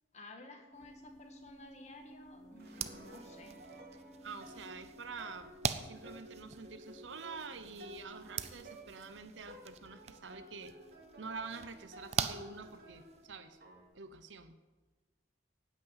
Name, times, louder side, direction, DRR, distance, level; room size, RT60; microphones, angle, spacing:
voice 1, 0.1-3.6, left 2 dB, 35° left, 4 dB, 1.6 m, -53 dB
sound 1, 0.7-14.1, equal, ahead, 2.7 m, -60 dB
sound 2, 2.4-13.8, right 1 dB, 55° right, 2.2 m, -55 dB
sound 3, 2.6-13.3, right 7 dB, 35° right, 0.5 m, -43 dB
voice 2, 4.2-5.5 5.8-10.7 11.2-13.6 13.9-14.6, right 4 dB, 85° right, 11 dB, 0.8 m, -47 dB
9.6 x 8.4 x 9.0 m, 1.3 s
head